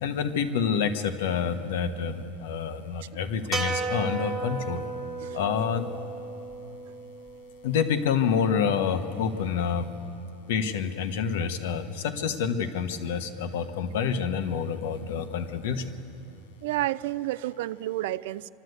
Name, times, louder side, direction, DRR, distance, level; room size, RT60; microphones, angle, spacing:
voice 1, 0.0-4.9 5.3-5.9 7.6-9.9 10.5-15.9, left 7 dB, 60° left, 8 dB, 1.2 m, -28 dB
sound 1, 3.5-7.9, right 3 dB, 5° right, 1.4 m, -34 dB
voice 2, 16.6-18.5, right 15 dB, 60° right, 17 dB, 0.4 m, -30 dB
26.5 x 12.5 x 8.1 m, 2.9 s
supercardioid pair, 180°, 0 cm